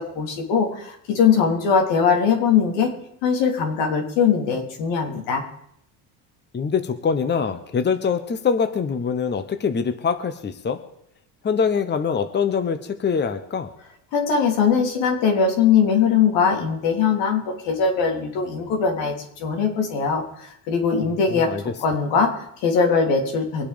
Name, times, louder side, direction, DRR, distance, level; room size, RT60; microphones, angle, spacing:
voice 1, 0.0-2.9 3.2-5.4 14.1-21.5 21.8-23.7, left 6 dB, 85° left, 2 dB, 3.3 m, -21 dB
voice 2, 6.5-10.8 11.4-13.7 21.3-21.6, left 6 dB, 25° left, 9 dB, 1.1 m, -24 dB
23.5 x 8.5 x 5.2 m, 0.73 s
cardioid pair, 110°, 43 cm